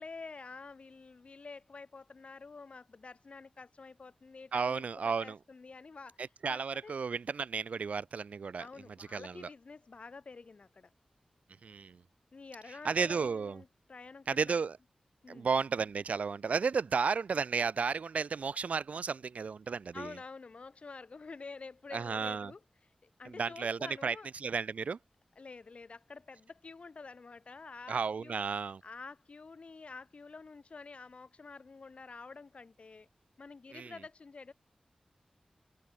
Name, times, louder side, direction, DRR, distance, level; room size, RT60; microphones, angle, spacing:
voice 1, 0.0-7.0 8.6-10.9 12.3-14.6 15.2-15.5 19.9-24.3 25.3-28.4 28.8-33.1 33.4-34.5, left 4 dB, 60° left, 3.4 m, -49 dB
voice 2, 4.5-5.4 6.4-8.7 9.1-9.5 11.6-12.0 12.8-13.6 14.3-14.8 15.3-20.1 21.9-22.5 23.3-25.0 27.9-28.8 33.7-33.9, right 5 dB, 80° right, 0.5 m, -33 dB
wide cardioid pair, 100°, 2 cm